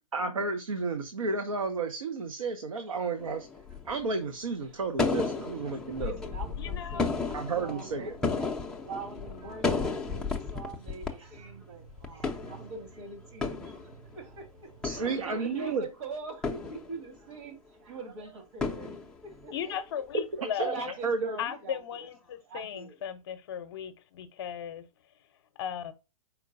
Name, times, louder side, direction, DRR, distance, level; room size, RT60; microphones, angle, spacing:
voice 1, 0.1-3.5 3.8-6.2 7.3-8.2 14.8-15.9 20.4-20.8 21.0-21.4, right 4 dB, 70° right, 0.8 m, -32 dB
sound 1, 3.2-4.0 5.0-11.1 11.4-11.5 11.9-13.0 13.2-14.3 14.7-15.7 16.4-17.3 18.6-19.6, left 4 dB, 5° left, 0.5 m, -33 dB
voice 2, 5.0-5.5 6.0-8.5 8.8-19.8 20.6-22.1 22.5-23.0, right 3 dB, 50° right, 1.6 m, -43 dB
sound 2, 5.3-15.0, right 4 dB, 85° right, 2.7 m, -54 dB
voice 3, 6.6-7.2 19.5-21.0 21.4-24.8 25.6-25.9, left 9 dB, 45° left, 0.7 m, -37 dB
4.6 x 4.4 x 2.5 m
figure-of-eight pair, 120°, 18 cm